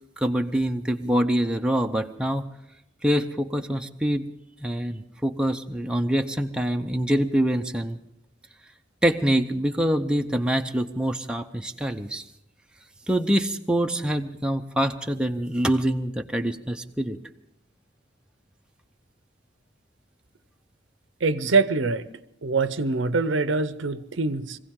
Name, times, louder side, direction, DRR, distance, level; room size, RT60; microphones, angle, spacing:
voice 1, 0.2-2.5 3.0-4.3 4.6-8.0 9.0-12.2 13.1-17.2, equal, 5° right, 4 dB, 0.7 m, -25 dB
voice 2, 21.2-22.1 22.4-24.6, right 3 dB, 75° right, 14 dB, 0.7 m, -24 dB
23.0 x 16.0 x 3.7 m, 0.81 s
head